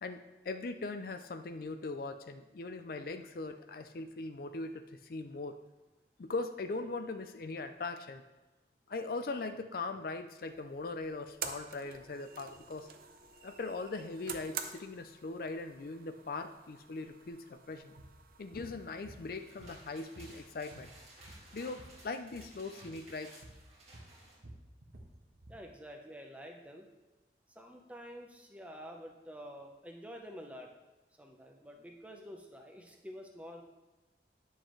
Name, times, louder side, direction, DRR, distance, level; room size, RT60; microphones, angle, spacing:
voice 1, 0.0-5.6 6.2-8.2 8.9-12.9 13.4-17.9 18.4-20.9 21.5-23.3, left 3 dB, 55° left, 8 dB, 0.4 m, -40 dB
sound 1, 10.4-21.0, right 7 dB, 55° right, 0.6 m, -49 dB
sound 2, 18.0-18.2 18.5-18.7 19.1-19.9 20.2-22.0 22.3-22.5 22.8-23.0 23.4-23.6 23.9-25.6, right 1 dB, 75° right, 1.2 m, -53 dB
sound 3, 19.2-24.4, right 1 dB, 35° right, 1.8 m, -57 dB
voice 2, 25.5-26.9 27.5-30.7 31.2-33.6, equal, 10° right, 2 dB, 0.8 m, -48 dB
9.8 x 6.3 x 3.2 m, 1.1 s
head